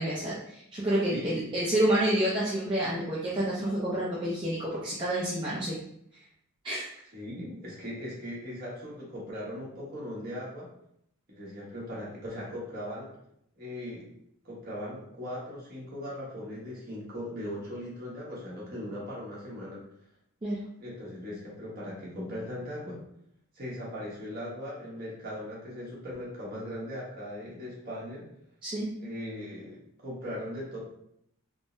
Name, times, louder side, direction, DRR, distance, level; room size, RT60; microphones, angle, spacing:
voice 1, 0.0-5.8 6.6-6.8 20.4-20.6 28.6-28.9, right 1 dB, 20° right, -7 dB, 0.4 m, -28 dB
voice 2, 1.1-1.6 7.1-10.7 11.3-13.1 13.6-14.1 14.4-19.8 20.8-23.0 23.5-28.2 29.0-30.8, equal, 40° right, -6 dB, 1.2 m, -39 dB
3.6 x 2.0 x 2.5 m, 0.74 s
head